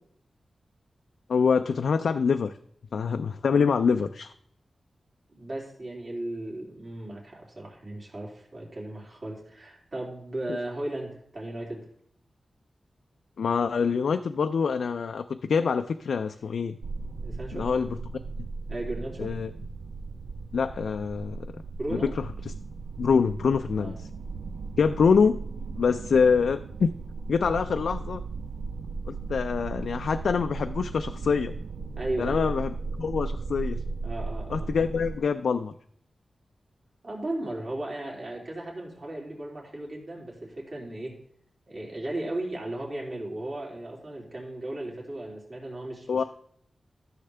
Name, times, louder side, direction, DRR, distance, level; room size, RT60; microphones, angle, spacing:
voice 1, 1.3-2.5 2.9-4.3 13.4-16.8 17.5-18.0 19.2-19.5 20.5-21.6 21.9-22.0 23.0-23.9 24.8-25.4 25.8-26.9 27.3-28.2 29.1-31.5 32.2-33.8 34.5-35.7 46.1-46.2, left 5 dB, 90° left, 7 dB, 0.3 m, -25 dB
voice 2, 5.3-11.8 17.2-17.7 18.7-19.3 21.8-22.1 23.8-23.9 32.0-32.5 34.0-34.8 37.0-41.1 41.7-46.2, right 1 dB, 50° right, -3 dB, 3.0 m, -36 dB
sound 1, 16.8-35.2, right 4 dB, 85° right, 0.3 m, -36 dB
13.5 x 6.5 x 3.3 m, 0.65 s
wide cardioid pair, 105°, 0 cm